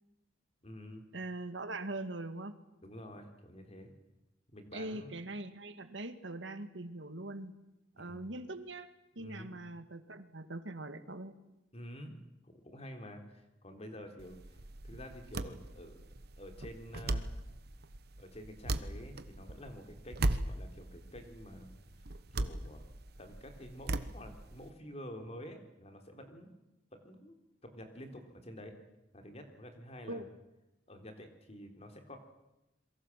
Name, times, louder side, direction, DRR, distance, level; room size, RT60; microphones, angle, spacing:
voice 1, 0.6-1.1 2.8-3.9 4.5-5.1 8.0-8.3 9.2-9.5 11.7-12.1 12.4-14.6 14.8-16.1 16.4-17.3 18.2-21.7 22.3-26.5 26.9-27.3 27.6-28.7 29.1-30.2 30.9-32.2, equal, 35° left, 5 dB, 3.7 m, -49 dB
voice 2, 1.1-2.6 4.7-7.5 8.0-8.9 9.2-11.3 30.1-30.2, right 2 dB, 75° right, 9 dB, 2.0 m, -42 dB
sound 1, 14.2-24.7, right 2 dB, 60° right, 1.2 m, -39 dB
27.5 x 22.5 x 7.5 m, 0.94 s
head